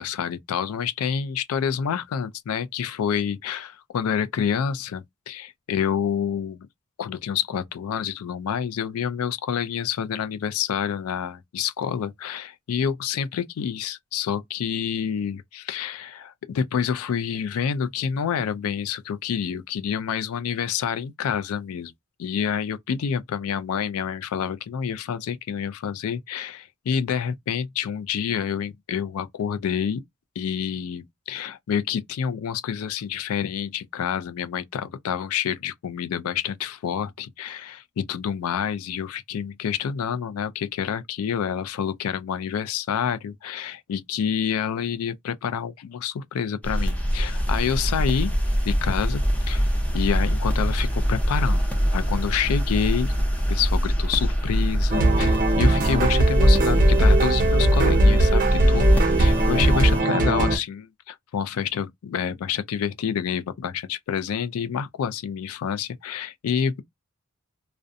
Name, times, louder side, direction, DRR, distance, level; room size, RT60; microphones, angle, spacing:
voice 1, 0.0-6.7 7.0-21.9 22.2-30.0 30.4-48.3 48.6-51.6 51.9-53.1 53.5-66.8, left 7 dB, 85° left, 0.3 m, -28 dB
sound 1, 46.6-60.0, equal, 5° left, 0.5 m, -24 dB
sound 2, 54.9-60.6, right 1 dB, 40° right, 0.5 m, -19 dB
2.5 x 2.1 x 2.5 m
head